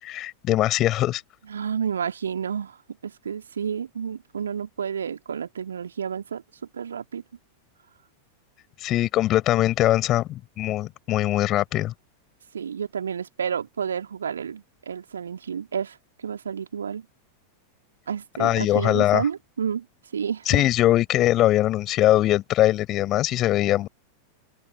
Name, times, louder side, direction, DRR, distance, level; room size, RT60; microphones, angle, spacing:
voice 1, 0.0-1.2 8.8-11.9 18.4-19.2 20.5-23.9, left 14 dB, 35° left, 5.4 m, -21 dB
voice 2, 1.5-6.4 6.7-7.2 12.5-17.0 18.1-19.8 20.1-20.6, right 7 dB, 70° right, 2.8 m, -30 dB
open air
figure-of-eight pair, 90°, 0 cm